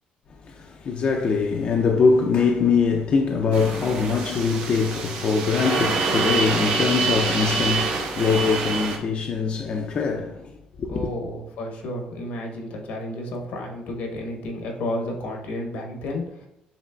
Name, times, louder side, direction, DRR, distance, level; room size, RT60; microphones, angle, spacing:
voice 1, 0.4-10.5 10.8-11.1, left 5 dB, 45° left, 0.4 m, -22 dB
sound 1, 3.5-9.0, right 4 dB, 85° right, 0.9 m, -26 dB
voice 2, 10.9-16.5, left 1 dB, 80° left, 1.1 m, -31 dB
7.1 x 2.9 x 2.3 m
cardioid pair, 110°, 3 cm